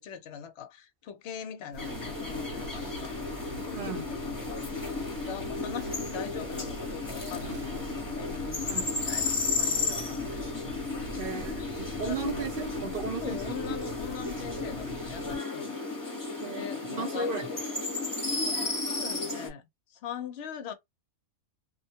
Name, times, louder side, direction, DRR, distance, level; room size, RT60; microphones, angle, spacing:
voice 1, 0.0-3.1 3.7-4.6 5.2-10.7 12.0-12.5 13.2-15.8 16.5-17.4 19.0-19.6 19.9-20.7, left 8 dB, 60° left, 0.7 m, -42 dB
sound 1, 1.7-15.4, right 1 dB, 70° right, 0.9 m, -43 dB
sound 2, 1.8-19.5, left 3 dB, 15° left, 0.8 m, -34 dB
voice 2, 3.7-4.1 8.6-8.9 11.1-13.4 16.4-17.5, right 4 dB, 50° right, 0.7 m, -35 dB
2.4 x 2.2 x 2.7 m
omnidirectional pair, 1.5 m